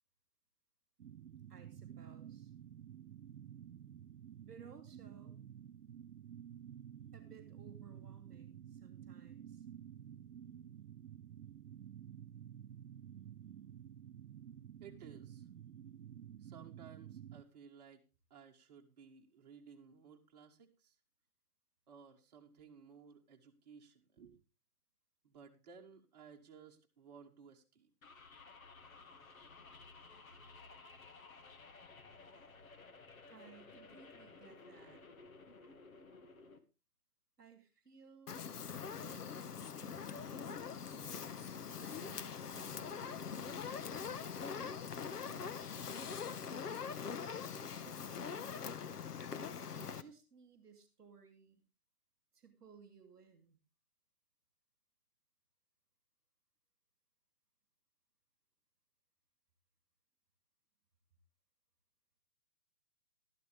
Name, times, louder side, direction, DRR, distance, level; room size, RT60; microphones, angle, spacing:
sound 1, 1.0-17.4, right 10 dB, 75° right, 0.9 m, -52 dB
voice 1, 1.5-2.5 4.4-5.4 7.1-9.6 33.3-35.0 37.4-38.5 38.9-40.8 41.7-43.8 44.0-45.8 47.6-48.8 49.7-51.6 52.3-53.6, right 6 dB, 5° right, -17 dB, 0.6 m, -60 dB
voice 2, 14.8-15.5 16.4-18.0 18.3-21.0 21.9-24.4 25.2-27.9, right 6 dB, 25° right, 1 dB, 1.9 m, -58 dB
sound 2, 28.0-36.6, left 4 dB, 60° left, 2.1 m, -56 dB
Fire, 38.3-50.0, left 6 dB, 80° left, 1.2 m, -43 dB
13.0 x 12.0 x 3.4 m, 0.29 s
hypercardioid pair, 165°, 46 cm